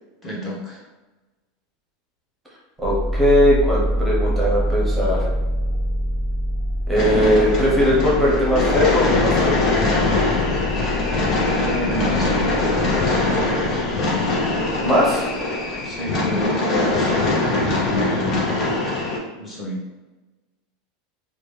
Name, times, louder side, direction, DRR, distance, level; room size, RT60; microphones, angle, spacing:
voice 1, 0.2-0.9 11.6-12.6 15.8-18.4 19.4-19.8, equal, 20° left, -5 dB, 1.1 m, -29 dB
sound 1, 2.8-15.5, equal, 55° left, 1.4 m, -26 dB
voice 2, 2.8-5.3 6.9-9.7 14.8-15.3, equal, 10° right, -5 dB, 0.9 m, -19 dB
sound 2, 7.0-19.2, left 2 dB, 40° left, 0.8 m, -22 dB
2.9 x 2.2 x 3.4 m, 1.2 s
supercardioid pair, 140°, 0 cm